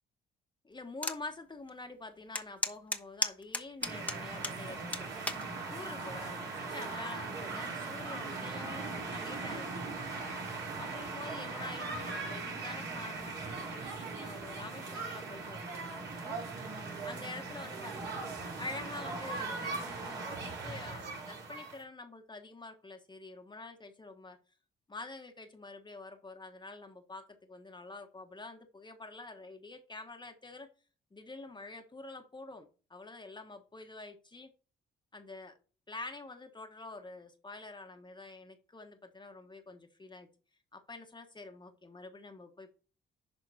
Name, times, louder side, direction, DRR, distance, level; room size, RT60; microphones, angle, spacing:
voice 1, 0.6-5.1 5.7-9.7 10.8-16.4 17.0-18.0 18.6-24.4 24.9-30.7 31.1-34.5 35.1-35.5 35.9-40.3 40.7-42.7, left 3 dB, 20° left, 5 dB, 1.3 m, -47 dB
sound 1, 1.0-1.2 1.7-1.8 2.3-4.6 4.9-5.4 6.2-6.5, left 2 dB, 5° left, 1.0 m, -34 dB
sound 2, 3.8-21.8, right 3 dB, 65° right, 4.8 m, -39 dB
11.0 x 3.8 x 4.2 m, 0.36 s
cardioid pair, 90°, 20 cm